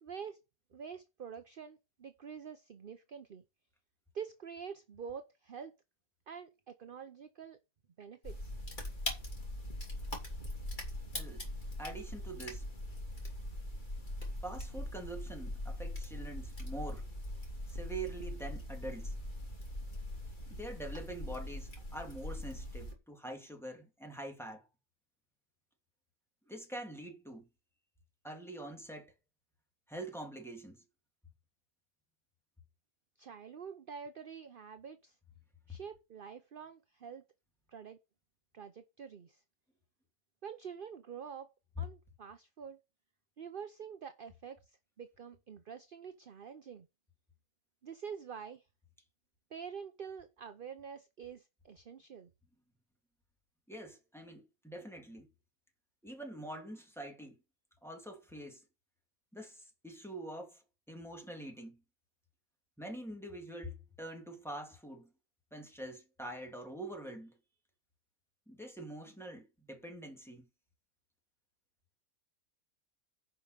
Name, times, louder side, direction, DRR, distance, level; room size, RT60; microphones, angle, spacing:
voice 1, 0.0-0.4 0.7-3.4 4.1-5.8 6.3-7.6 8.0-8.5 33.2-35.2 35.7-37.2 37.7-38.0 38.5-39.4 40.4-41.5 41.8-42.8 43.4-46.9 47.8-48.7 49.5-52.3, right 7 dB, 45° right, 0.9 m, -47 dB
sound 1, 8.2-22.9, left 1 dB, 30° left, 3.2 m, -41 dB
voice 2, 11.1-11.4 11.8-12.7 14.4-17.1 17.7-19.2 20.5-24.7 26.5-27.5 28.2-29.1 29.9-30.8 53.7-55.3 56.0-57.4 57.8-58.6 59.3-60.6 60.9-61.8 62.8-65.1 65.5-67.3 68.5-70.5, right 1 dB, ahead, 2.7 m, -45 dB
10.5 x 5.5 x 6.6 m
omnidirectional pair, 1.5 m